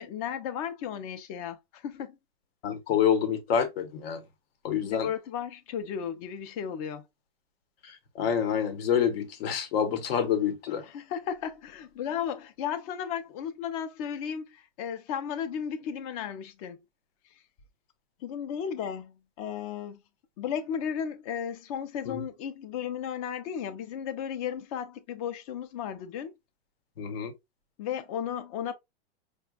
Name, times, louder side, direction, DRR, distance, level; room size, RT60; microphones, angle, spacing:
voice 1, 0.0-2.2 4.8-7.0 10.9-16.8 18.2-20.0 20.4-26.3 27.8-28.7, left 8 dB, 35° left, 0.5 m, -34 dB
voice 2, 2.6-4.2 4.6-5.1 7.8-10.8 22.1-22.2 27.0-27.3, left 8 dB, 70° left, 1.0 m, -27 dB
5.1 x 2.2 x 2.3 m
supercardioid pair, 155°, 32 cm